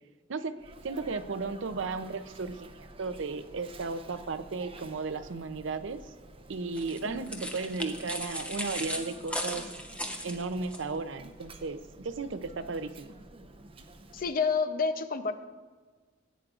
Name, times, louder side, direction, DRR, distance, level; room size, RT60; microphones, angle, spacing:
voice 1, 0.3-6.0 6.5-9.6 10.2-13.1, right 4 dB, 75° right, 11 dB, 0.6 m, -35 dB
Sneeze, 0.6-14.3, right 2 dB, 30° right, 0.7 m, -51 dB
sound 1, 6.8-10.8, equal, 5° left, 0.8 m, -37 dB
voice 2, 14.1-15.3, left 5 dB, 50° left, 10 dB, 0.7 m, -29 dB
15.5 x 9.0 x 2.5 m, 1.4 s
head